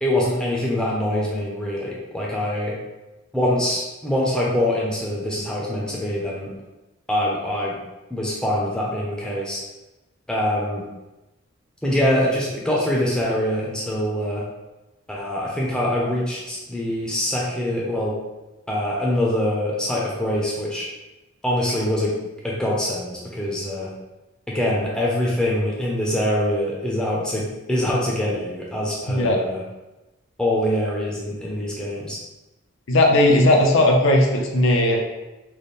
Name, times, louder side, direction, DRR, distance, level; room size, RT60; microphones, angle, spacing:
voice 1, 0.0-2.8 3.3-6.5 7.1-7.8 8.1-9.6 10.3-10.9 11.8-14.4 15.1-18.2 18.7-20.9 21.4-22.1 22.4-23.9 24.5-29.6 30.4-32.2, left 1 dB, 5° left, -4 dB, 0.6 m, -24 dB
voice 2, 29.1-29.4 32.9-35.0, left 1 dB, 70° left, 0 dB, 0.6 m, -17 dB
3.3 x 2.1 x 4.1 m, 1.0 s
head